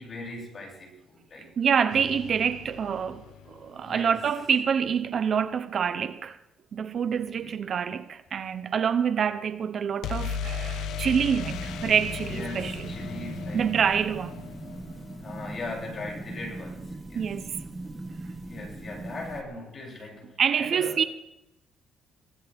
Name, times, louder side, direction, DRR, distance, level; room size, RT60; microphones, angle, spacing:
voice 1, 0.0-1.5 3.7-4.2 7.4-7.6 12.2-14.0 15.2-17.3 18.4-21.0, left 2 dB, 35° left, 7.1 m, -40 dB
voice 2, 1.6-6.4 6.7-12.9 13.5-14.5 17.1-17.6 20.4-21.0, right 7 dB, 40° right, 0.7 m, -26 dB
sound 1, 1.9-3.9 10.0-15.8, left 6 dB, 75° left, 1.1 m, -37 dB
sound 2, 11.4-19.4, right 2 dB, 15° right, 1.6 m, -39 dB
23.5 x 16.0 x 3.5 m
cardioid pair, 145°, 0 cm